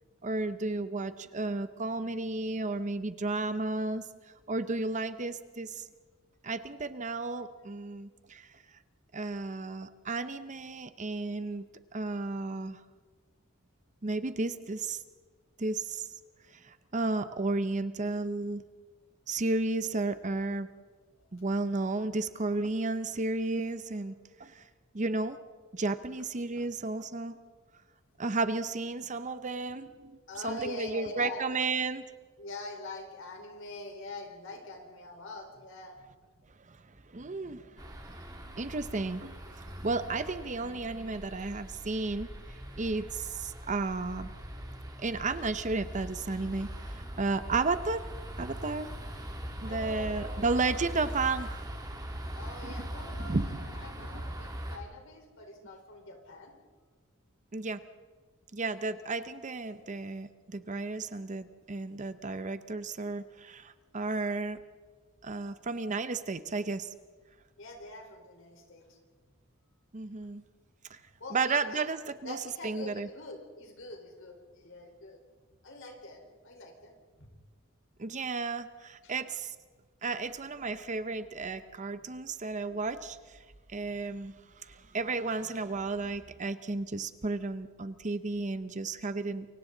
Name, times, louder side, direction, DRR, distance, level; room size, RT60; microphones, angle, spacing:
voice 1, 0.2-4.0 4.5-5.8 6.4-8.5 9.1-11.6 11.9-12.8 14.0-15.0 15.6-16.1 16.6-18.6 19.3-20.7 21.3-24.1 24.4-24.6 24.9-25.4 25.7-27.4 28.2-30.2 30.4-32.1 36.7-36.8 37.1-38.2 38.6-42.3 42.8-44.3 45.0-48.0 48.4-48.9 49.6-51.7 52.6-52.9 53.2-53.7 54.1-54.2 57.5-57.8 58.5-64.6 65.2-66.9 69.9-70.4 70.9-71.0 71.3-72.4 72.6-73.1 78.0-79.5 80.0-83.4 83.7-84.3 84.6-89.5, right 3 dB, 35° right, 12 dB, 0.7 m, -33 dB
voice 2, 30.3-31.6 32.4-36.0 49.6-50.5 51.0-51.1 52.3-56.5 67.6-68.9 71.2-71.8 72.2-75.2 75.6-76.9 77.2-77.3 79.0-79.1, left 2 dB, 65° left, 2 dB, 4.3 m, -44 dB
sound 1, 37.8-54.8, right 1 dB, 20° right, 2.5 m, -41 dB
28.5 x 24.0 x 3.9 m, 1.4 s
head